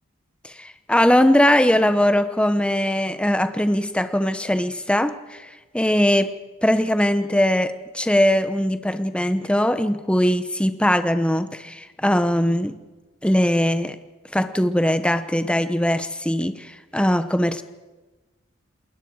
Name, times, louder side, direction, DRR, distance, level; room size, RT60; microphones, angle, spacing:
voice 1, 0.4-6.3 6.6-12.8 13.2-14.0 14.3-17.6, left 1 dB, 5° left, 10 dB, 0.9 m, -20 dB
28.5 x 21.0 x 4.8 m, 1.2 s
head